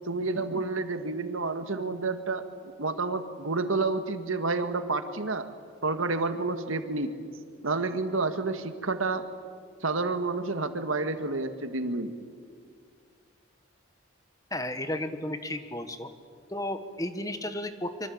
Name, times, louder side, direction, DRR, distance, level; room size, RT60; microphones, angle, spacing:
voice 1, 0.1-5.5 5.8-7.1 7.6-9.3 9.8-12.1, right 3 dB, 80° right, 8 dB, 1.9 m, -29 dB
voice 2, 14.5-16.1 16.5-18.1, left 1 dB, 15° left, 9 dB, 1.3 m, -33 dB
25.5 x 24.5 x 8.7 m, 2.1 s
head